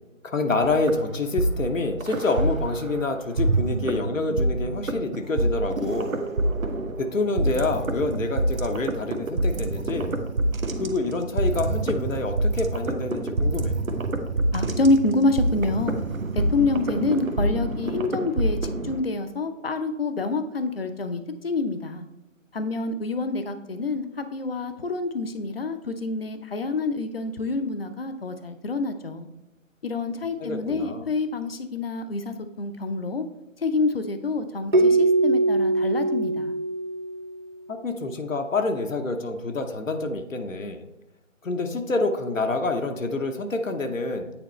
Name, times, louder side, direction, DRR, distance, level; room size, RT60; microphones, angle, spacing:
voice 1, 0.3-6.1 7.0-10.1 10.8-13.7 30.4-31.0 37.7-40.8 41.4-44.3, left 2 dB, 75° left, 5 dB, 1.0 m, -27 dB
sound 1, 0.6-3.0 3.4-19.0, right 2 dB, 85° right, 1.0 m, -26 dB
voice 2, 14.5-16.0 16.5-22.1 22.5-29.3 29.8-33.2 33.6-36.6, left 3 dB, 45° left, 9 dB, 0.7 m, -27 dB
Keyboard (musical), 34.7-37.6, right 2 dB, 40° right, 0.5 m, -22 dB
9.0 x 4.1 x 3.1 m, 1.0 s
figure-of-eight pair, 160°, 40 cm